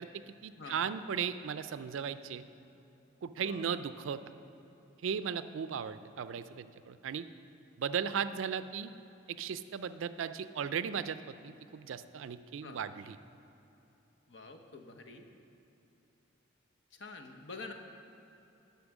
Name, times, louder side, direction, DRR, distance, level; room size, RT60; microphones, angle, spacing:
voice 1, 0.0-2.4 3.2-4.2 5.0-7.3 7.8-8.9 9.3-13.2, right 7 dB, 75° right, 13 dB, 0.4 m, -36 dB
voice 2, 3.4-3.7 12.6-12.9 14.3-15.3 16.9-17.7, left 3 dB, 60° left, 4 dB, 0.8 m, -47 dB
9.7 x 5.8 x 7.1 m, 2.9 s
head